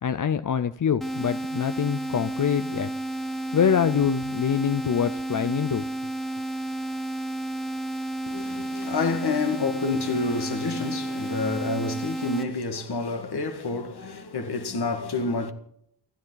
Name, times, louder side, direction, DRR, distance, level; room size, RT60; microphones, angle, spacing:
voice 1, 0.0-2.9 3.5-5.8, left 8 dB, 50° left, 0.7 m, -25 dB
sound 1, 1.0-12.4, right 1 dB, ahead, 1.4 m, -31 dB
voice 2, 8.2-15.5, left 3 dB, 70° left, 2.1 m, -28 dB
29.0 x 11.0 x 4.0 m
cardioid pair, 80°, 41 cm